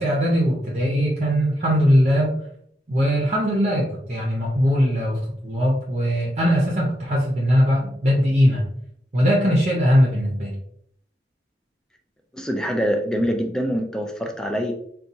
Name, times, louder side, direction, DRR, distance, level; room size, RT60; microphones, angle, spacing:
voice 1, 0.0-2.4 2.9-8.7 9.1-10.5, equal, 40° right, -3 dB, 0.7 m, -20 dB
voice 2, 12.3-14.7, equal, 5° left, 3 dB, 0.4 m, -24 dB
4.1 x 2.3 x 2.6 m, 0.66 s
head